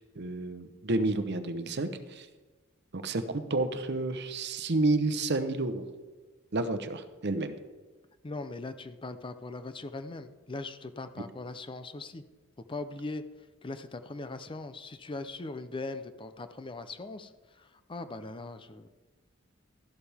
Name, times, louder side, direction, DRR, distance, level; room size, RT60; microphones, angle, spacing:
voice 1, 0.2-2.3 2.9-5.9 6.5-7.6, right 2 dB, 55° right, 9 dB, 0.9 m, -30 dB
voice 2, 8.2-12.2 12.7-13.2 13.6-17.3 17.6-18.9, left 3 dB, 25° left, 10 dB, 0.5 m, -40 dB
13.0 x 11.5 x 3.5 m, 1.3 s
head